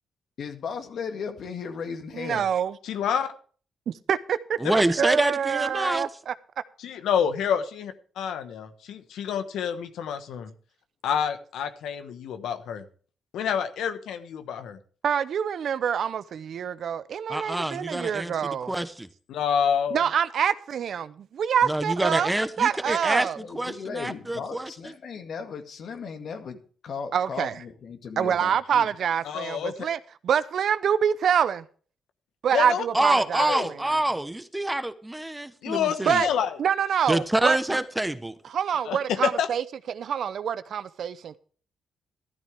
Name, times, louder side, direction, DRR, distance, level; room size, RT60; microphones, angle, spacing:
voice 1, 0.4-2.5 23.4-26.6 26.8-28.9, left 5 dB, 65° left, 2.0 m, -36 dB
voice 2, 2.1-2.8 4.1-6.3 15.0-18.7 19.9-22.3 22.6-23.4 27.1-27.6 28.2-31.7 32.4-34.0 36.0-36.3 36.6-37.6 38.5-41.4, right 8 dB, 65° right, 0.7 m, -26 dB
voice 3, 2.8-3.3 6.8-10.5 11.0-12.8 13.3-14.8 19.3-20.0 29.2-29.7 32.5-32.8 33.5-33.7 35.6-36.5 38.8-39.0 39.2-39.5, left 8 dB, 80° left, 1.3 m, -28 dB
voice 4, 4.6-6.1 17.3-19.1 21.6-24.9 32.9-36.2 37.1-38.4, right 1 dB, 10° right, 1.1 m, -27 dB
13.5 x 12.5 x 3.5 m
cardioid pair, 70°, 0 cm